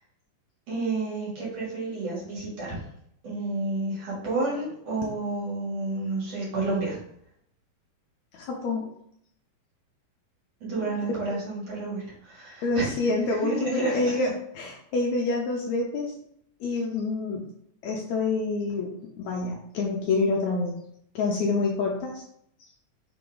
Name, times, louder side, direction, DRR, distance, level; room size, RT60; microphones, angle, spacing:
voice 1, 0.7-2.8 3.2-7.0 10.6-13.0 13.4-14.2, right 2 dB, 50° right, -6 dB, 3.5 m, -30 dB
voice 2, 8.3-8.9 11.3-11.4 12.6-16.1 16.6-17.5 17.8-18.9 19.2-20.7 21.2-22.2, left 3 dB, 70° left, 0 dB, 1.8 m, -27 dB
6.1 x 4.6 x 3.8 m, 0.70 s
omnidirectional pair, 3.8 m